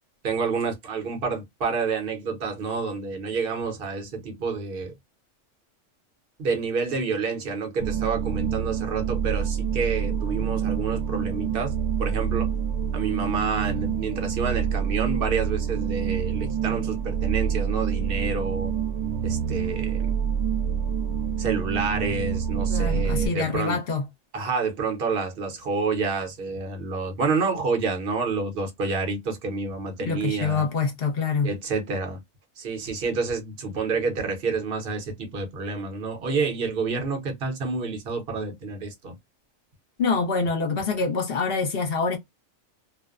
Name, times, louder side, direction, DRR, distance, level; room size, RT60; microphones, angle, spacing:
voice 1, 0.2-4.9 6.4-11.7 12.0-12.5 12.9-18.7 19.2-20.1 21.4-23.8 24.3-30.7 31.4-32.2 32.6-39.1, right 4 dB, 50° right, 1.0 m, -28 dB
sound 1, 7.8-23.3, right 8 dB, 85° right, 1.0 m, -27 dB
voice 2, 22.7-24.0 30.0-31.5 40.0-42.2, left 4 dB, 50° left, 0.9 m, -25 dB
2.5 x 2.1 x 2.4 m
omnidirectional pair, 1.4 m